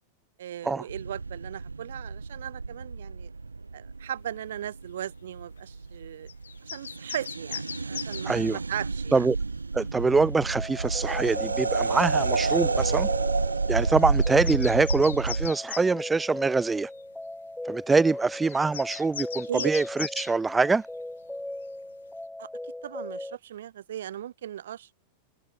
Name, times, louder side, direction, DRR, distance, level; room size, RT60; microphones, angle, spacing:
voice 1, 0.4-3.3 3.7-6.3 6.7-9.3 19.5-19.7 22.4-24.9, right 11 dB, 60° right, 5.7 m, -37 dB
sound 1, 0.9-15.5, right 4 dB, 80° right, 0.6 m, -30 dB
sound 2, 6.3-8.3 11.1-11.2 11.8-12.0 12.4-12.6 13.6-13.7 14.0-15.9 17.0-17.1 18.3-20.3, left 8 dB, 65° left, 1.9 m, -39 dB
voice 2, 8.3-8.6 9.1-9.4 9.7-13.1 13.7-16.9 17.7-20.8, right 4 dB, 10° right, 1.1 m, -24 dB
sound 3, 10.1-23.4, left 1 dB, 5° left, 5.3 m, -39 dB
figure-of-eight pair, 90°, 0 cm